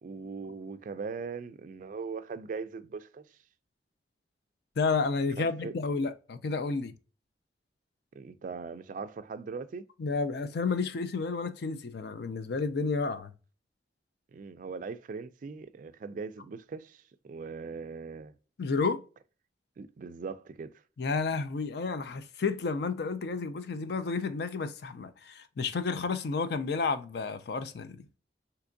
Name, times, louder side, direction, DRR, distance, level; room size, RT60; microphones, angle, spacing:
voice 1, 0.0-3.3 5.4-5.7 8.1-9.8 14.3-18.3 19.8-20.7, right 5 dB, 45° right, 0.3 m, -40 dB
voice 2, 4.8-6.9 10.0-13.3 18.6-19.0 21.0-28.1, left 4 dB, 65° left, 0.4 m, -31 dB
3.4 x 2.9 x 2.5 m
head